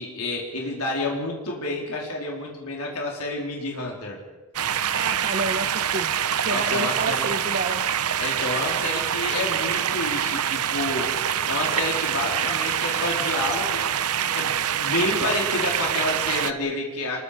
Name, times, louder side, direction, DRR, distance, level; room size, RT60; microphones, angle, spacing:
voice 1, 0.0-4.2 6.5-7.3 8.2-11.1 11.5-13.8 14.3-17.2, left 2 dB, 75° left, -1 dB, 4.1 m, -29 dB
sound 1, 4.5-16.5, right 9 dB, 75° right, 0.9 m, -25 dB
voice 2, 4.9-6.1 6.4-7.8, right 3 dB, 45° right, 6 dB, 1.1 m, -29 dB
27.0 x 23.0 x 5.1 m, 1.3 s
head